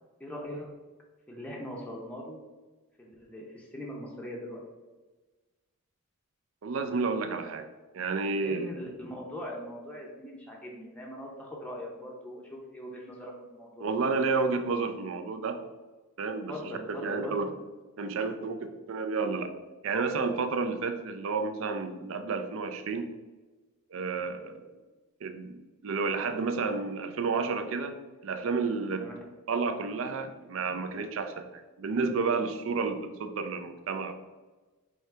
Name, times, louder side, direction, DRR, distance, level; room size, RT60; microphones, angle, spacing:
voice 1, 0.2-0.7 1.3-2.4 3.0-4.6 8.4-13.9 16.5-17.4 29.0-29.1, equal, 5° left, -2 dB, 0.6 m, -41 dB
voice 2, 6.6-7.7 7.9-8.7 13.8-15.6 16.2-16.6 16.9-17.5 18.0-19.5 19.8-23.1 23.9-24.6 25.2-29.1 29.5-34.1, right 4 dB, 65° right, 7 dB, 0.4 m, -31 dB
4.7 x 2.8 x 3.2 m, 1.2 s
head